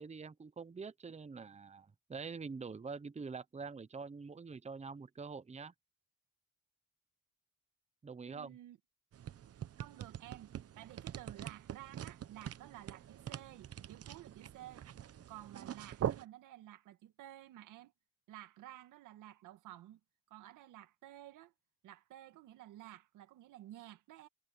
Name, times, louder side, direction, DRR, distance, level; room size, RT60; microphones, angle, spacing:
voice 1, 0.0-5.7 8.0-8.6, right 5 dB, 20° right, 0.9 m, -45 dB
voice 2, 8.2-8.8 9.8-14.9 15.3-17.9 18.3-20.0 20.3-21.5 21.8-24.3, right 14 dB, 90° right, 2.1 m, -53 dB
sound 1, 9.1-16.2, right 10 dB, 55° right, 1.0 m, -44 dB
cardioid pair, 90°, 30 cm